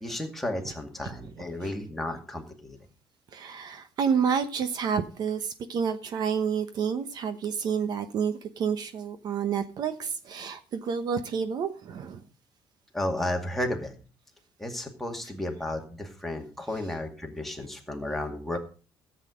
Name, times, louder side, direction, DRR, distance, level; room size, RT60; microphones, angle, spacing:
voice 1, 0.0-2.8 12.9-13.9 14.6-18.6, left 1 dB, ahead, 2.2 m, -33 dB
voice 2, 3.3-12.2, right 6 dB, 50° right, 1.0 m, -29 dB
14.0 x 8.2 x 5.1 m
cardioid pair, 140°, 9 cm